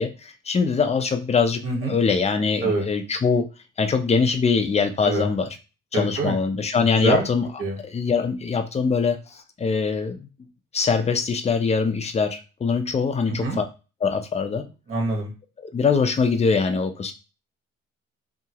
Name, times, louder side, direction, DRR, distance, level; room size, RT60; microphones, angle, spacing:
voice 1, 0.0-1.6 1.9-3.5 3.8-5.5 5.9-7.5 7.8-10.3 10.7-13.6 14.0-14.6 15.6-17.1, left 5 dB, 20° left, 7 dB, 0.5 m, -23 dB
voice 2, 1.6-2.0 2.6-2.9 5.0-5.3 5.9-6.3 6.8-7.2 7.6-7.8 13.3-13.6 14.9-15.3, right 2 dB, 45° right, 0 dB, 1.3 m, -25 dB
2.8 x 2.4 x 2.8 m, 0.31 s
cardioid pair, 90°, 30 cm